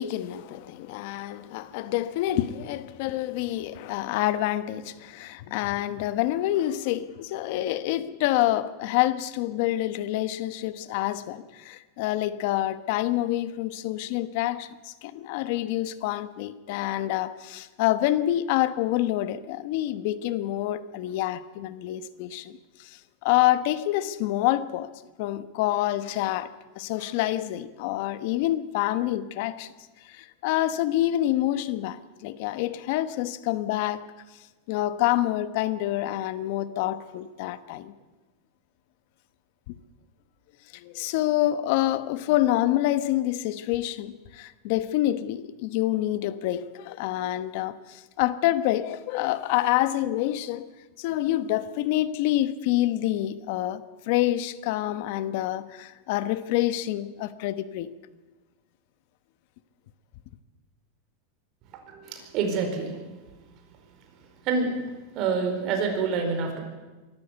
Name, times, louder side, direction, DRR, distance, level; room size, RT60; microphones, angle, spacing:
voice 1, 0.0-22.5 22.8-24.9 25.2-26.5 26.8-29.7 30.0-34.1 34.7-37.9 40.7-50.7 51.0-57.9, left 14 dB, 60° left, 1.1 m, -27 dB
voice 2, 61.8-63.0 64.4-64.8 65.1-66.6, right 5 dB, 45° right, 4.7 m, -27 dB
23.5 x 13.5 x 8.2 m
supercardioid pair, 140°, 0 cm